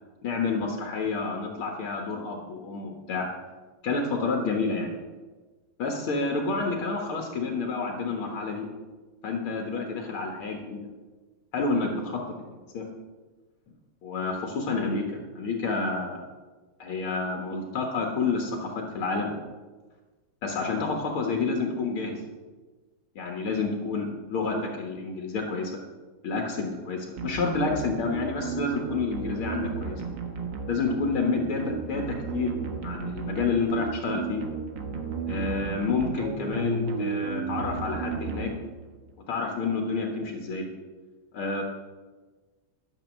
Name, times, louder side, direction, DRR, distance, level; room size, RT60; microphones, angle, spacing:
voice 1, 0.2-3.3 3.8-4.9 5.8-8.7 9.2-10.8 11.5-12.2 12.7-12.8 14.0-15.1 15.4-16.2 16.8-19.3 20.4-22.2 23.2-25.7 26.2-30.0 30.7-32.6 32.8-34.4 35.3-38.5 39.3-40.7 41.3-41.6, left 4 dB, 75° left, 1 dB, 2.3 m, -29 dB
sound 1, 27.2-39.0, right 5 dB, 60° right, 2.0 m, -33 dB
12.5 x 7.3 x 7.3 m, 1.3 s
omnidirectional pair, 2.3 m